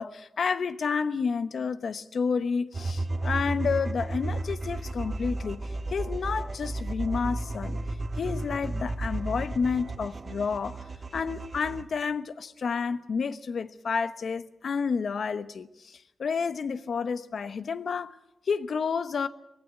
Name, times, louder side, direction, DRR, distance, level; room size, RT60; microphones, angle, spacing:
voice 1, 0.0-5.6 5.9-7.8 8.2-10.8 11.1-18.2 18.5-19.3, left 5 dB, 70° left, 1.0 m, -30 dB
sound 1, 2.7-11.8, right 2 dB, 40° right, 1.4 m, -33 dB
19.0 x 15.5 x 9.7 m
wide cardioid pair, 115°, 0 cm